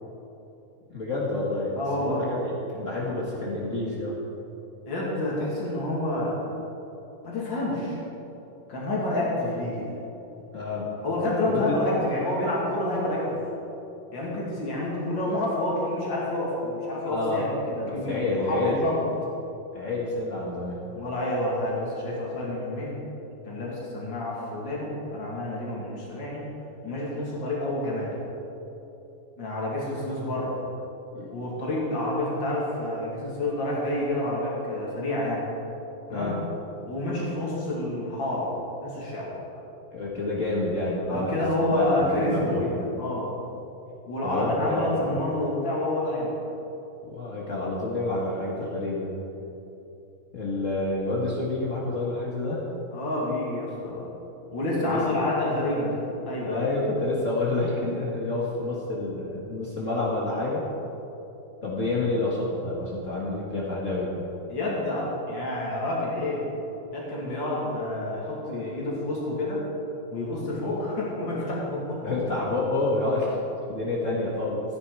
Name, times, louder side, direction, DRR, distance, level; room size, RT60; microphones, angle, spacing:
voice 1, 0.9-4.2 10.5-10.9 11.4-11.7 17.1-17.4 17.8-18.8 19.7-20.8 31.1-31.3 36.1-36.4 39.9-42.7 44.2-45.1 47.1-49.2 50.3-52.6 54.8-55.2 56.4-60.7 61.6-64.2 72.0-73.4 73.7-74.6, left 2 dB, 45° left, -5 dB, 1.9 m, -28 dB
voice 2, 1.7-2.2 4.9-6.4 7.2-8.0 8.7-9.9 11.0-13.4 14.1-19.0 20.9-23.0 23.4-26.4 26.8-28.1 29.4-30.6 31.3-35.4 36.1-36.4 36.8-38.5 38.8-39.3 41.1-43.3 44.1-46.4 52.9-54.1 54.5-56.7 64.5-66.4 66.9-69.6 70.1-72.1, left 1 dB, 85° left, -5 dB, 3.2 m, -28 dB
14.5 x 11.0 x 4.8 m, 3.0 s
omnidirectional pair, 2.0 m